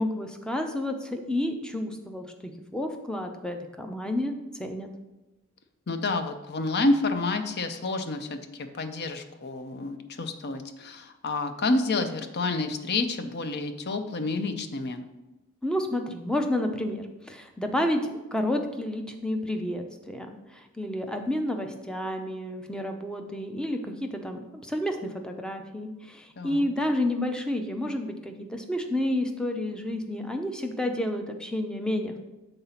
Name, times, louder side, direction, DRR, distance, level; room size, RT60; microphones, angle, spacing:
voice 1, 0.0-4.9 15.6-32.2, left 1 dB, 5° left, 4 dB, 0.5 m, -30 dB
voice 2, 5.9-15.0 26.4-26.6, left 2 dB, 45° left, 8 dB, 0.6 m, -29 dB
7.1 x 3.9 x 5.7 m, 1.1 s
head